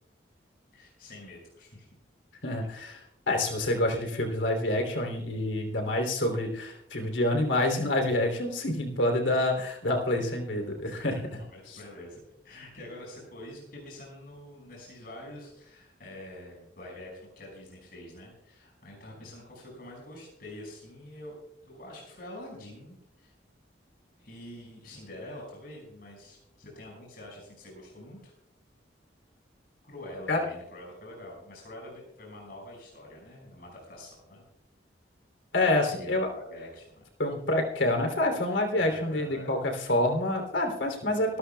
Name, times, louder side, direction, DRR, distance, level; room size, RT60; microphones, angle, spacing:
voice 1, 0.7-1.9 11.0-21.4 21.6-23.3 24.2-28.3 29.8-34.4 35.5-37.0 38.9-39.5 41.1-41.4, left 1 dB, 55° left, -2 dB, 5.7 m, -46 dB
voice 2, 2.4-11.2 11.7-11.8 30.3-30.5 35.5-36.3 37.2-41.4, left 1 dB, 85° left, 3 dB, 3.1 m, -27 dB
25.0 x 13.0 x 2.3 m, 0.79 s
head